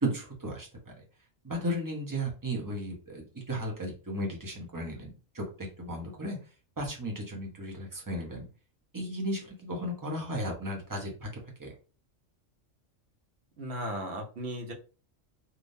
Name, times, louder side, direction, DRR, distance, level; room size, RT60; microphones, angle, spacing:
voice 1, 0.0-1.0 1.4-6.4 6.8-8.5 8.9-11.3 11.6-11.7, right 1 dB, 20° right, 0 dB, 0.7 m, -35 dB
voice 2, 13.6-14.7, equal, 60° right, 1 dB, 1.1 m, -36 dB
3.5 x 2.7 x 2.6 m, 0.35 s
omnidirectional pair, 1.3 m